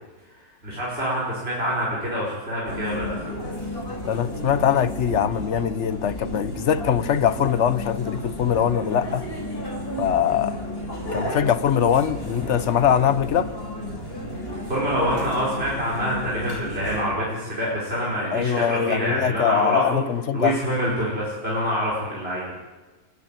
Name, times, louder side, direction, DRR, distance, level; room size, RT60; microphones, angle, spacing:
voice 1, 0.6-3.2 14.7-20.0 20.3-22.4, equal, 40° right, 5.4 m, -26 dB
sound 1, 2.6-17.0, equal, 40° left, 4.3 m, -33 dB
voice 2, 4.1-9.3 10.0-10.6 11.1-13.5 18.3-20.6, left 9 dB, 55° left, 1.1 m, -22 dB
29.5 x 10.5 x 9.1 m
omnidirectional pair, 1.6 m